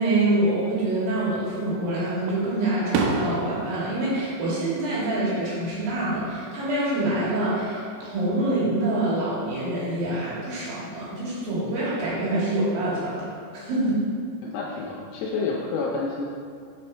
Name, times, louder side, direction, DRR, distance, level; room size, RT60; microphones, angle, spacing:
voice 1, 0.0-14.0, right 1 dB, 55° right, -8 dB, 3.4 m, -26 dB
Fireworks, 1.1-1.8 2.3-5.4 5.7-6.3 7.8-8.6, right 3 dB, 80° right, 2.6 m, -31 dB
voice 2, 14.4-16.3, left 4 dB, 80° left, -2 dB, 2.4 m, -29 dB
8.4 x 5.2 x 4.4 m, 2.3 s
omnidirectional pair, 5.4 m